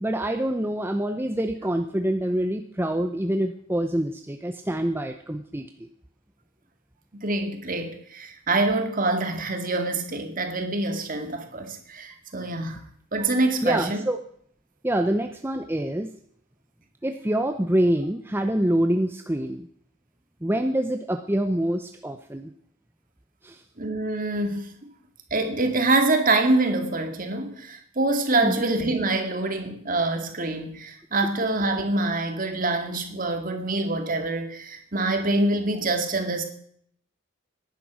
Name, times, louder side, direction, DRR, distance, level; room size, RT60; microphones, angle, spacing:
voice 1, 0.0-5.6 13.6-14.2 14.8-16.1 17.0-19.7 20.4-22.5 23.4-23.6 28.4-28.6, right 1 dB, 10° right, 6 dB, 0.6 m, -26 dB
voice 2, 7.1-12.8 13.1-14.0 23.8-24.7 25.3-36.4, right 2 dB, 40° right, 6 dB, 2.1 m, -25 dB
18.0 x 10.5 x 6.2 m, 0.65 s
head